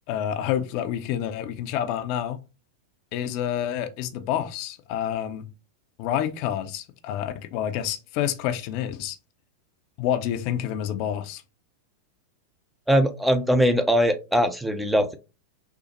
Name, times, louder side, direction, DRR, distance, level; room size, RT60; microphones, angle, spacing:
voice 1, 0.1-2.4 3.1-5.5 6.0-9.2 10.0-11.4, left 10 dB, 45° left, 0.5 m, -28 dB
voice 2, 12.9-15.1, equal, 5° right, 0.5 m, -21 dB
5.8 x 2.0 x 3.0 m
figure-of-eight pair, 90°, 0 cm